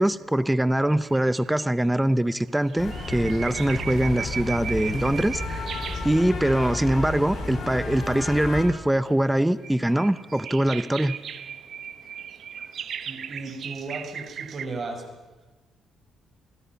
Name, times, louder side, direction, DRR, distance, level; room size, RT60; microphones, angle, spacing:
voice 1, 0.0-5.6 6.0-11.2, right 1 dB, 5° right, 15 dB, 0.8 m, -23 dB
sound 1, 0.9-1.9 2.5-6.7 7.0-7.6 8.5-14.7, right 8 dB, 60° right, 1.0 m, -38 dB
sound 2, 2.8-8.6, left 2 dB, 55° left, 6.9 m, -32 dB
voice 2, 13.1-15.0, right 3 dB, 45° right, 4 dB, 4.9 m, -35 dB
27.0 x 17.0 x 5.7 m, 1.2 s
cardioid pair, 90°, 0 cm